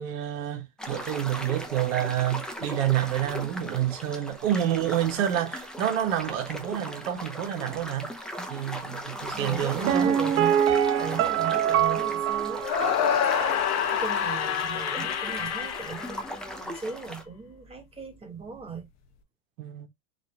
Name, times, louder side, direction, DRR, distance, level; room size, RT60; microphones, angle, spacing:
voice 1, 0.0-8.1 8.5-10.1 19.6-19.9, right 11 dB, 75° right, 1.3 m, -28 dB
sound 1, 0.8-17.2, equal, ahead, 0.7 m, -38 dB
voice 2, 9.4-10.6 11.0-12.7 13.9-18.9, right 4 dB, 15° right, 1.4 m, -37 dB
Piano, 9.9-13.6 13.9-14.0, right 10 dB, 35° right, 0.5 m, -25 dB
sound 2, 12.6-16.8, left 8 dB, 40° left, 0.8 m, -27 dB
4.0 x 2.6 x 3.3 m
supercardioid pair, 110°, 40 cm